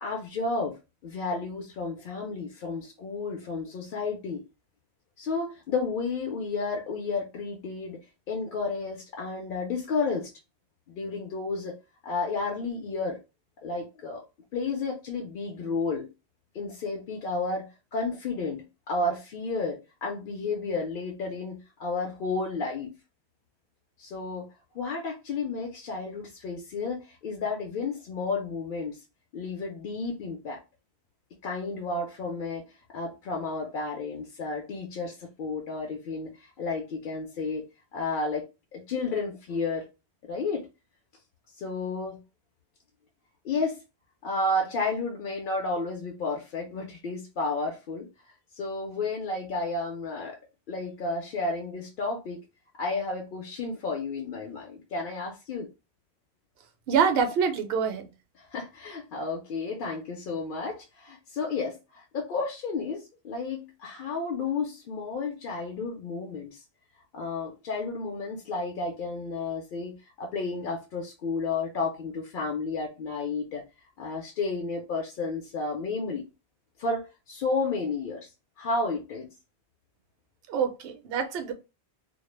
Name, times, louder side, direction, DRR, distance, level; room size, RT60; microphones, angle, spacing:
voice 1, 0.0-4.4 5.2-8.0 8.3-10.3 10.9-11.8 12.0-13.2 13.6-14.2 14.5-16.1 16.5-23.0 24.0-24.5 24.7-29.0 29.3-30.6 31.4-32.7 32.9-37.7 37.9-39.9 40.3-40.7 41.5-42.2 43.4-43.8 44.2-48.1 48.5-50.4 50.7-52.4 52.8-55.7 58.4-66.6 67.1-73.6 74.0-76.3 76.8-78.3 78.6-79.3, left 3 dB, 60° left, 0.6 m, -32 dB
voice 2, 56.9-58.1 80.5-81.5, right 6 dB, 70° right, 0.7 m, -26 dB
2.2 x 2.0 x 3.0 m
omnidirectional pair, 1.1 m